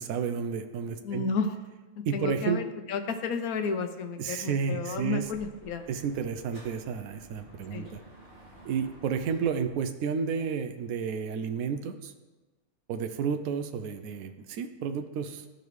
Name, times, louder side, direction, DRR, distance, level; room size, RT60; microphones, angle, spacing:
voice 1, 0.0-1.2 2.1-2.6 4.2-5.3 5.9-8.0 8.6-12.1 12.9-15.5, right 6 dB, 80° right, 8 dB, 1.1 m, -31 dB
voice 2, 1.0-1.5 2.0-5.9 7.7-8.0, left 5 dB, 85° left, 8 dB, 1.2 m, -32 dB
Dog / Motorcycle, 4.9-9.8, right 1 dB, 35° right, 2.6 m, -53 dB
14.0 x 5.1 x 3.1 m, 1.2 s
omnidirectional pair, 1.5 m